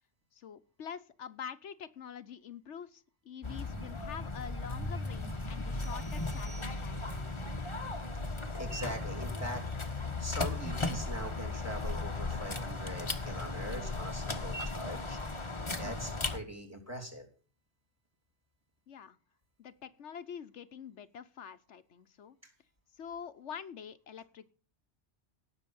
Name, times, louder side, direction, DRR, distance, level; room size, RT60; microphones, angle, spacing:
voice 1, 0.3-7.5 13.7-14.0 15.8-16.1 18.9-19.2 19.6-22.4 22.9-24.5, left 7 dB, 80° left, 10 dB, 1.2 m, -46 dB
sound 1, 3.4-16.4, left 3 dB, 25° left, 1.3 m, -36 dB
sound 2, 5.8-7.3, right 4 dB, 55° right, 2.9 m, -57 dB
voice 2, 8.6-9.6 10.2-15.2 15.8-17.3, equal, 15° right, 5 dB, 3.2 m, -42 dB
17.5 x 6.8 x 7.1 m, 0.38 s
omnidirectional pair, 1.2 m